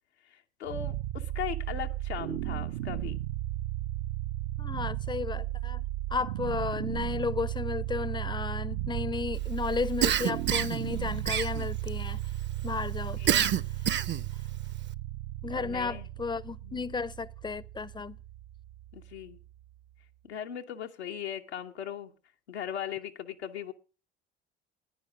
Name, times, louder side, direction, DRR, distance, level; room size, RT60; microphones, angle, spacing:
voice 1, 0.2-3.2 13.2-13.4 15.5-16.1 16.6-16.9 18.9-19.4 20.2-22.1 22.5-23.7, left 9 dB, 85° left, 0.9 m, -38 dB
sound 1, 0.7-19.7, right 14 dB, 65° right, 0.8 m, -35 dB
voice 2, 4.6-5.8 6.1-12.2 12.6-13.4 15.4-18.2, left 5 dB, 15° left, 0.5 m, -33 dB
Cough, 10.0-10.8 11.3-11.9 13.3-14.3, right 10 dB, 35° right, 0.6 m, -27 dB
15.0 x 10.0 x 4.9 m
figure-of-eight pair, 60°, 33 cm